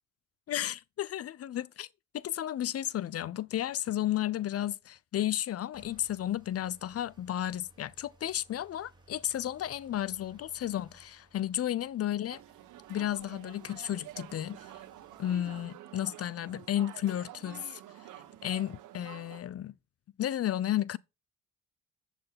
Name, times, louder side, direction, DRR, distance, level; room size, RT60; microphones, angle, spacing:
voice 1, 0.5-1.9 2.1-12.4 12.9-14.6 15.2-17.8 18.4-19.7 20.2-21.0, left 12 dB, 50° left, 0.6 m, -33 dB
sound 1, 5.7-15.7, right 2 dB, 15° right, 4.9 m, -62 dB
sound 2, 12.3-19.4, right 13 dB, 85° right, 1.2 m, -49 dB
8.2 x 7.5 x 5.8 m
cardioid pair, 90°, 30 cm